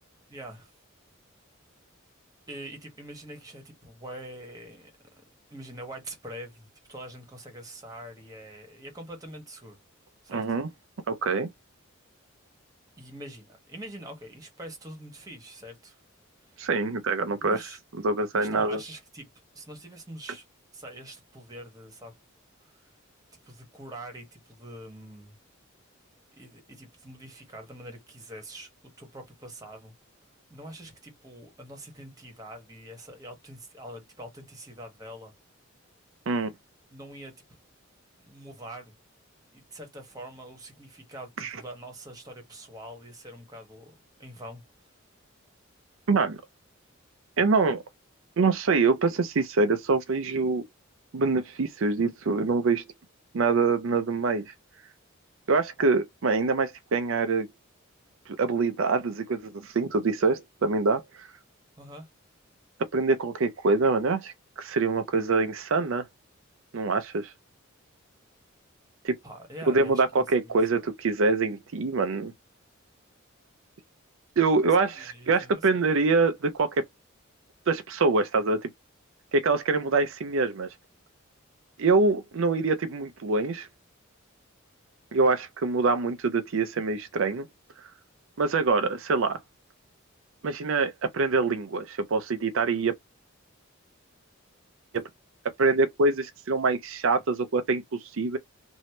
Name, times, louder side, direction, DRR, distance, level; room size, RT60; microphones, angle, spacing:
voice 1, 0.3-0.7 2.5-4.9 5.5-9.8 10.2-10.4 13.0-16.0 17.4-17.8 18.3-19.3 19.5-20.4 20.7-22.1 22.6-22.8 23.4-25.3 26.4-28.7 29.0-29.9 30.5-35.3 36.9-37.3 38.2-38.9 39.5-43.9 44.2-44.6 61.8-62.1 69.2-70.9 74.8-75.9, right 1 dB, 20° right, 1.4 m, -44 dB
voice 2, 10.3-10.7 11.1-11.5 16.6-17.6 18.0-18.8 36.3-36.5 41.4-41.6 46.1-46.4 47.4-47.8 48.4-50.6 51.1-52.9 53.3-54.5 55.5-57.5 58.3-61.3 62.9-66.1 66.7-67.3 69.0-69.2 69.7-72.3 74.4-76.8 77.7-78.7 79.3-80.7 81.8-83.7 85.1-87.5 87.8-87.9 88.4-89.4 90.4-93.0 94.9-95.1 95.6-98.4, right 3 dB, 65° right, 0.5 m, -25 dB
3.2 x 2.7 x 2.9 m
head